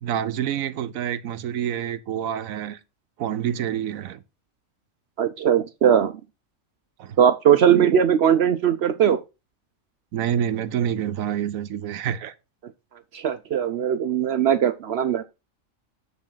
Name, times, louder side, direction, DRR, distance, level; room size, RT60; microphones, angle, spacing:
voice 1, 0.0-2.8 3.2-4.2 7.0-7.2 10.1-12.3, right 9 dB, 80° right, 1.1 m, -27 dB
voice 2, 5.2-6.1 7.2-9.2 13.1-15.2, right 9 dB, 60° right, 0.7 m, -19 dB
7.3 x 4.1 x 5.6 m
omnidirectional pair, 1.4 m